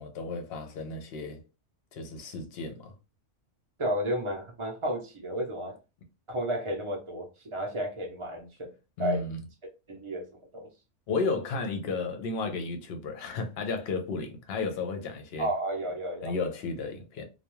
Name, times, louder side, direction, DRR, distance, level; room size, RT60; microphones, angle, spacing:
voice 1, 0.0-1.4 1.9-2.9 9.0-9.4 11.1-15.5 16.2-17.2, left 4 dB, 60° left, 0.8 m, -33 dB
voice 2, 3.8-5.7 6.3-8.7 9.0-9.2 9.9-10.3 10.5-10.7 15.4-16.3, right 1 dB, 35° right, 0.5 m, -32 dB
2.3 x 2.3 x 2.9 m
omnidirectional pair, 1.2 m